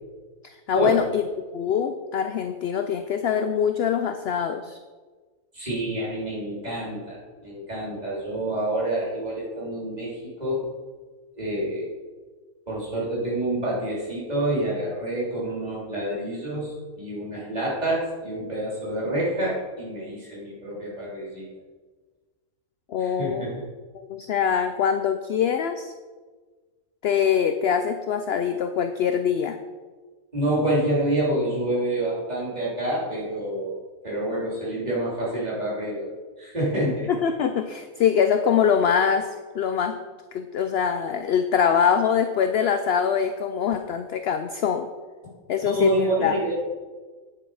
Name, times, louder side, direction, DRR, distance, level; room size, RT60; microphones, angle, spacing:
voice 1, 0.4-1.2 1.5-4.8 22.9-23.6 23.9-25.9 27.0-29.6 37.1-40.0 40.3-44.9 45.5-46.4, left 7 dB, 65° left, 8 dB, 0.6 m, -24 dB
voice 2, 5.5-10.7 11.3-11.9 12.7-21.5 23.0-23.6 30.3-33.8 34.0-37.1 45.6-46.5, right 1 dB, 25° right, -6 dB, 3.4 m, -27 dB
9.3 x 7.6 x 4.8 m, 1.4 s
omnidirectional pair, 1.5 m